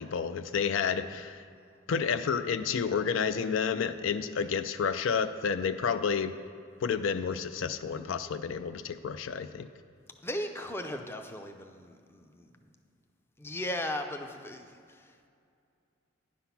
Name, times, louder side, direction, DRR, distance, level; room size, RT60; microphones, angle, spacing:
voice 1, 0.0-1.4 1.9-6.3 6.8-9.7, left 6 dB, 65° left, 10 dB, 0.4 m, -30 dB
voice 2, 10.2-12.5 13.4-15.3, left 1 dB, 10° left, 5 dB, 0.5 m, -37 dB
10.5 x 6.0 x 5.7 m, 2.4 s
head